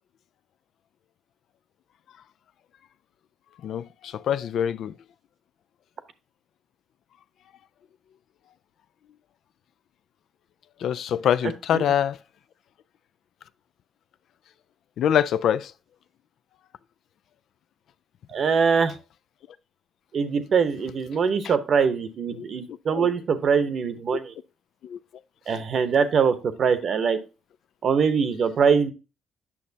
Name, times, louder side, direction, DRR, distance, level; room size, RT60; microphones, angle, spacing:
voice 1, 3.6-4.9 10.8-12.2 15.0-15.7 21.4-21.6 22.3-23.1 24.8-25.0, left 9 dB, 70° left, 0.3 m, -25 dB
voice 2, 18.3-18.9 20.1-24.3 25.5-27.2 27.8-28.9, right 6 dB, 55° right, 0.9 m, -22 dB
8.4 x 6.2 x 2.7 m
cardioid pair, 90°, 0 cm